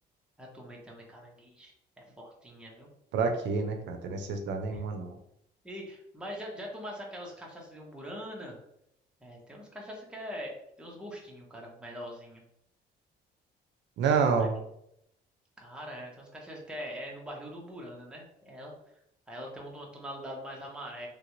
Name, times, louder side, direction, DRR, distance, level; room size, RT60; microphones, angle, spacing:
voice 1, 0.4-2.9 4.7-4.8 5.6-8.6 9.2-10.5 10.8-12.4 14.4-14.5 15.6-18.7 19.3-21.1, equal, 5° right, -2 dB, 0.8 m, -43 dB
voice 2, 3.1-5.2 14.0-14.5, right 5 dB, 75° right, 5 dB, 0.5 m, -28 dB
3.2 x 2.5 x 3.0 m, 0.77 s
cardioid pair, 125°, 18 cm